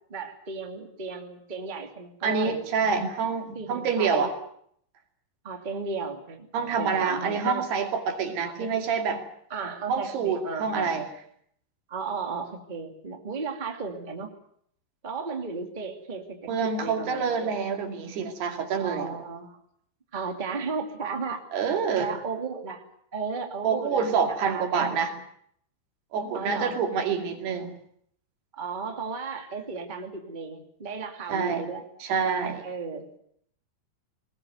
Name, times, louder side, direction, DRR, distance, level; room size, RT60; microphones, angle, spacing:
voice 1, 0.1-2.6 3.5-4.3 5.4-7.7 8.6-8.7 9.5-10.9 11.9-14.3 15.0-17.6 18.8-19.6 20.1-21.4 22.0-22.8 23.1-25.1 26.3-26.8 28.5-31.8 32.6-33.0, right 4 dB, 15° right, 3 dB, 2.0 m, -35 dB
voice 2, 2.2-4.3 6.5-9.2 9.9-11.1 16.5-19.2 21.5-22.1 23.6-25.1 26.1-27.7 31.3-31.7 32.0-32.7, right 5 dB, 75° right, 5 dB, 4.6 m, -27 dB
20.5 x 20.0 x 9.4 m, 0.68 s
omnidirectional pair, 4.7 m